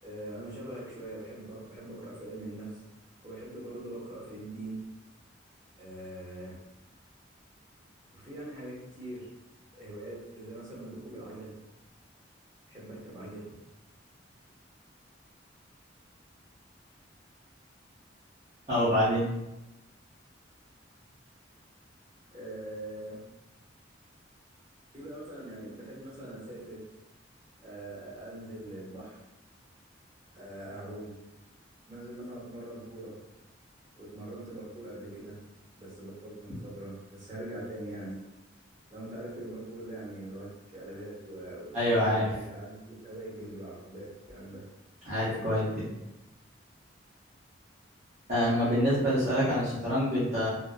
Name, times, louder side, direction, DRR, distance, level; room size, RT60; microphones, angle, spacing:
voice 1, 0.0-2.8 3.2-4.8 5.8-6.5 8.1-9.3 9.7-11.5 12.7-13.4 22.3-23.2 24.9-26.8 27.6-29.2 30.3-31.1 31.9-33.1 34.0-35.4 35.8-38.2 38.9-44.6, right 1 dB, 20° right, -8 dB, 1.0 m, -42 dB
voice 2, 18.7-19.2 41.7-42.3 45.0-45.9 48.3-50.5, equal, 35° right, -12 dB, 0.7 m, -26 dB
2.5 x 2.2 x 2.2 m, 0.92 s
head